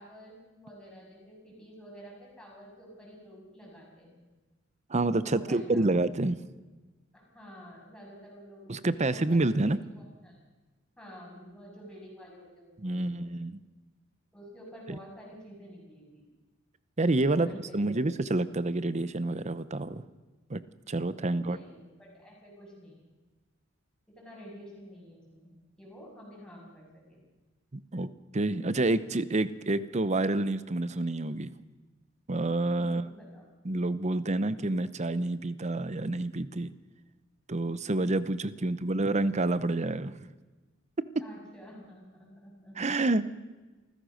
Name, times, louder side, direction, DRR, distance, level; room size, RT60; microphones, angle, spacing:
voice 1, 0.0-4.3 5.3-5.9 7.1-10.4 11.0-13.3 14.3-16.2 17.1-18.0 21.2-23.0 24.1-27.2 32.7-33.4 38.5-38.8 41.2-42.8, equal, 5° left, -3 dB, 7.2 m, -50 dB
voice 2, 4.9-6.4 8.7-9.8 12.8-13.6 17.0-17.5 17.7-20.0 20.5-20.6 20.9-21.6 27.7-31.5 32.3-33.1 33.6-36.7 37.5-40.3 42.8-43.3, right 2 dB, 35° right, 14 dB, 0.8 m, -28 dB
27.0 x 15.5 x 6.5 m, 1.2 s
head